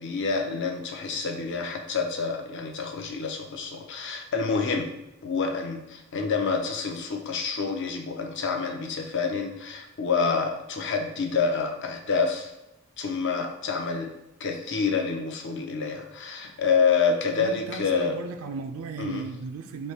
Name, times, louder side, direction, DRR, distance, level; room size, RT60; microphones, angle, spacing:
voice 1, 0.0-4.9 5.2-12.5 13.0-14.1 14.4-18.2 19.0-19.2, left 5 dB, 60° left, 3 dB, 0.6 m, -27 dB
voice 2, 17.4-19.9, right 4 dB, 75° right, 6 dB, 0.3 m, -36 dB
3.2 x 2.7 x 4.4 m, 0.91 s
head